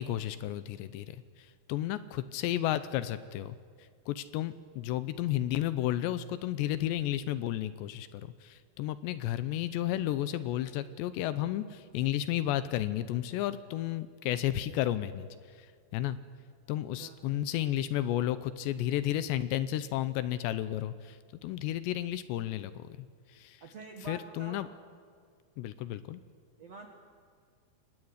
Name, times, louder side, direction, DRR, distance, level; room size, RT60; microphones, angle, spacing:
voice 1, 0.0-3.6 4.1-16.2 16.7-23.6 24.1-24.7 25.6-26.2, left 13 dB, 80° left, 14 dB, 2.8 m, -33 dB
voice 2, 17.0-17.3 23.6-24.6 26.6-26.9, right 3 dB, 55° right, 3 dB, 1.8 m, -46 dB
23.5 x 18.5 x 9.6 m, 2.1 s
omnidirectional pair, 5.3 m